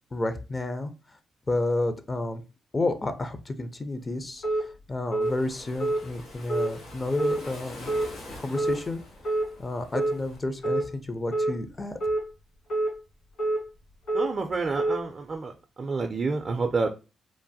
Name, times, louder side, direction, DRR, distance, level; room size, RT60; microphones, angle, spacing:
voice 1, 0.1-1.2 1.5-2.4 2.7-7.9 8.4-9.0 9.6-12.0, left 2 dB, 30° left, 9 dB, 0.4 m, -31 dB
sound 1, 4.4-4.6 5.1-5.3 5.8-6.0 6.5-6.7 7.2-7.4 7.9-8.1 8.6-8.8 9.2-9.5 9.9-10.2 10.6-10.8 11.3-11.5 12.0-12.2 12.7-12.9 13.4-13.6 14.1-14.3 14.8-15.0, right 2 dB, 60° left, 1.5 m, -26 dB
Waves surf, 5.2-10.4, left 1 dB, 80° left, 1.5 m, -45 dB
voice 2, 14.1-16.9, right 4 dB, 45° right, 4 dB, 0.4 m, -29 dB
3.1 x 2.1 x 2.6 m, 0.31 s
hypercardioid pair, 45°, 0 cm